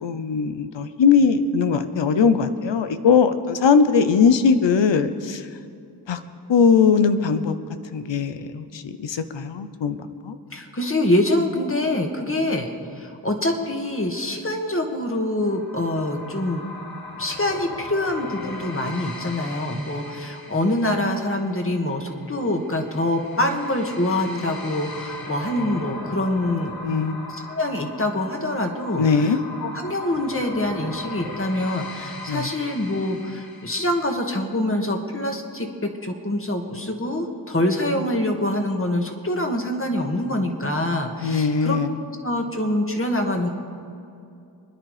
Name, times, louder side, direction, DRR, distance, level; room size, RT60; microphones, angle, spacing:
voice 1, 0.0-5.5 6.1-6.2 6.5-7.6 7.9-10.0 10.2-10.4 26.8-27.2 29.0-29.4 32.3-32.5 41.2-42.0, left 5 dB, 90° left, 10 dB, 0.9 m, -20 dB
voice 2, 10.5-16.6 17.2-26.8 27.3-41.8 42.2-43.5, left 1 dB, 30° left, 3 dB, 2.0 m, -25 dB
sound 1, 15.4-34.1, left 2 dB, 55° left, 1.9 m, -39 dB
25.0 x 10.5 x 5.0 m, 2.5 s
wide cardioid pair, 65°, 42 cm